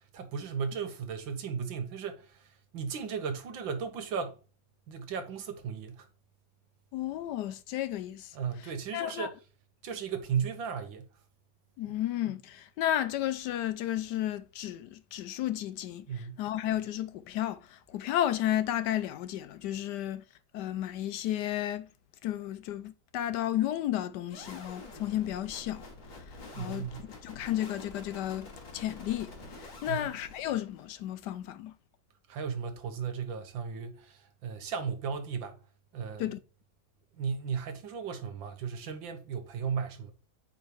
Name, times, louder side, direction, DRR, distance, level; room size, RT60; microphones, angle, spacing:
voice 1, 0.1-2.4 2.7-4.4 4.9-6.1 8.3-9.3 9.8-11.1 11.9-12.0 16.1-16.4 26.5-27.1 29.9-30.1 32.3-35.6 35.9-36.3 37.2-40.1, right 6 dB, 85° right, 1.8 m, -35 dB
voice 2, 6.9-8.4 8.9-9.3 11.8-20.2 20.5-21.9 22.2-25.8 26.6-31.7 36.2-36.4, left 12 dB, 75° left, 1.0 m, -33 dB
sound 1, 24.3-31.0, left 2 dB, 90° left, 3.5 m, -47 dB
8.2 x 5.0 x 3.1 m
omnidirectional pair, 2.1 m